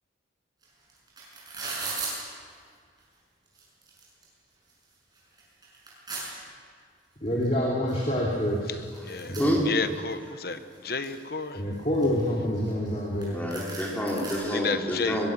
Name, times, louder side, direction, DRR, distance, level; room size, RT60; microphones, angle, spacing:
velcro Fastener, 0.6-0.7 0.9-2.1 3.0-3.1 3.5-4.2 4.7-4.8 5.2-6.2 7.4-7.5 7.9-8.0 8.2-10.1 10.5-11.2 11.7-13.0 13.2-13.3 13.5-14.3, right 4 dB, 20° right, 6.7 m, -37 dB
voice 1, 7.2-8.8 9.3-9.6 11.5-13.4, equal, 35° left, -3 dB, 2.7 m, -27 dB
voice 2, 9.0-9.4 9.6-11.6 14.5-15.3, left 4 dB, 55° left, 10 dB, 1.1 m, -31 dB
voice 3, 13.3-15.3, equal, 10° left, -3 dB, 3.5 m, -28 dB
22.0 x 21.5 x 6.2 m, 2.1 s
head